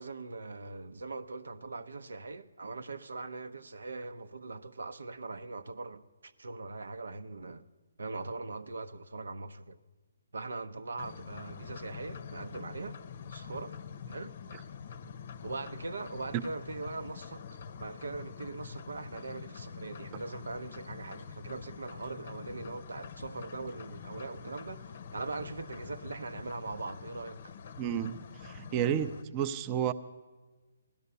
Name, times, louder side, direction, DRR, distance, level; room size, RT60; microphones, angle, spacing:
voice 1, 0.0-7.6 8.0-9.8 10.3-13.0 13.3-13.8 14.1-14.4 15.4-27.5, right 3 dB, 80° right, 0.8 m, -41 dB
sound 1, 11.0-29.2, left 6 dB, 50° left, 0.7 m, -46 dB
voice 2, 27.8-29.9, right 9 dB, 25° right, 0.6 m, -31 dB
16.0 x 12.5 x 6.8 m
hypercardioid pair, 155°, 0 cm